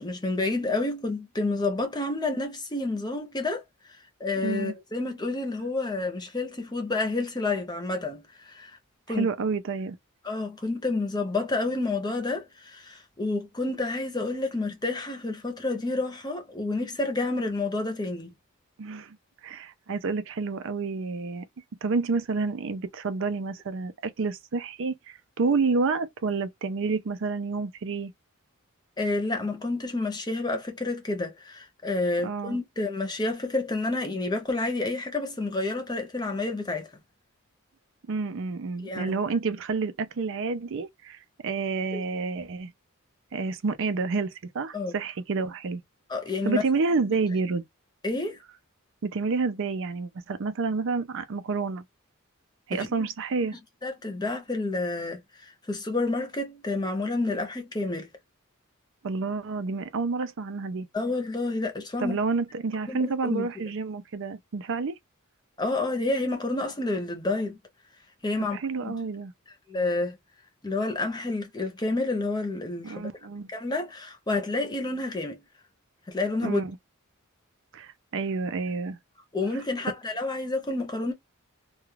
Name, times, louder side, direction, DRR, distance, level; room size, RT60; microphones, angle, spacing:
voice 1, 0.0-3.9 4.2-8.8 9.1-9.3 10.2-18.3 29.0-36.9 38.8-39.2 41.9-42.0 44.7-44.9 46.1-46.6 48.0-48.4 52.7-53.1 53.8-58.1 60.9-62.2 62.9-63.5 65.6-67.6 68.2-68.6 68.8-69.0 69.7-70.2 70.6-73.1 73.5-75.4 76.1-76.6 79.3-81.1, left 2 dB, 20° left, 0.7 m, -29 dB
voice 2, 4.4-4.7 9.2-10.0 18.8-19.2 19.4-21.4 21.8-28.1 32.2-32.6 38.1-42.7 43.3-45.8 46.4-47.6 49.0-51.8 52.7-53.6 59.0-60.9 62.0-65.0 68.5-69.3 72.8-73.5 76.4-76.8 77.7-79.0, right 4 dB, 60° right, 0.5 m, -29 dB
2.3 x 2.3 x 3.0 m
head